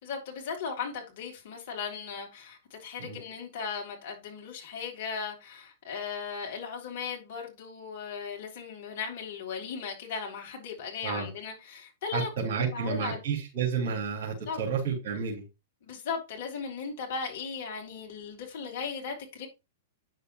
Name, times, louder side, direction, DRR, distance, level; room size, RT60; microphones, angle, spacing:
voice 1, 0.0-13.2 14.5-14.6 15.8-19.5, left 5 dB, 50° left, 3.2 m, -37 dB
voice 2, 12.1-15.4, right 6 dB, 45° right, 3.8 m, -31 dB
9.3 x 6.7 x 3.0 m
figure-of-eight pair, 100°, 0 cm